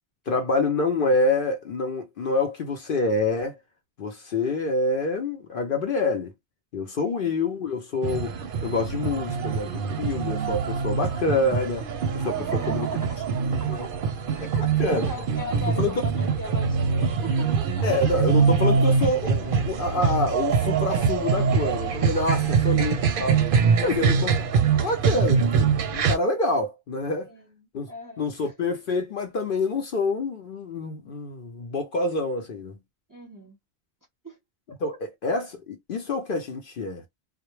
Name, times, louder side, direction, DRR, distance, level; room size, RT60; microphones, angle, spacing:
voice 1, 0.3-3.6 4.0-6.3 6.7-11.9 12.1-12.9 13.5-13.9 14.4-14.5 14.8-15.1 15.8-15.9 17.8-23.5 23.8-24.3 24.8-27.3 27.7-27.9 28.2-32.8 34.8-37.0, left 3 dB, 55° left, 0.7 m, -27 dB
sound 1, 8.0-26.2, right 6 dB, 60° right, 0.7 m, -24 dB
voice 2, 12.3-17.9 22.4-22.8 23.9-24.1 27.2-27.5 27.9-28.7 33.1-33.6 34.2-34.4, left 1 dB, 20° right, 0.7 m, -40 dB
2.2 x 2.1 x 3.0 m
omnidirectional pair, 1.1 m